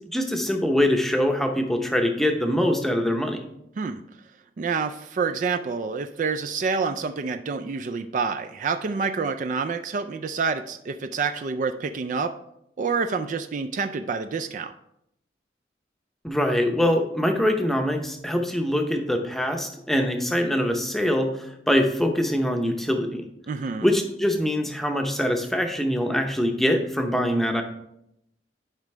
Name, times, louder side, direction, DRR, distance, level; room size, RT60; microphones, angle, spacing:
voice 1, 0.1-3.5 16.2-23.2 23.8-27.6, equal, ahead, 3 dB, 0.7 m, -23 dB
voice 2, 4.6-12.4 12.8-14.7 23.5-23.9, right 5 dB, 45° right, 8 dB, 0.3 m, -28 dB
10.5 x 5.0 x 3.2 m, 0.79 s
head